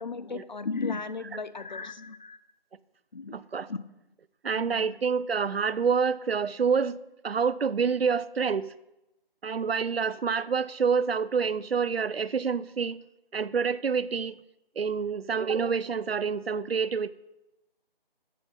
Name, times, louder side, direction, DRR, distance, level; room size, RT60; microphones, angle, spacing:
voice 1, 0.0-2.4 3.1-3.4 3.7-3.8 4.5-4.9, left 4 dB, 50° left, 0.6 m, -35 dB
voice 2, 3.3-3.7 4.4-7.0 7.2-8.7 9.4-13.0 13.3-14.4 14.8-17.1, right 6 dB, 80° right, 0.6 m, -27 dB
13.0 x 7.5 x 5.6 m
figure-of-eight pair, 165°, 30 cm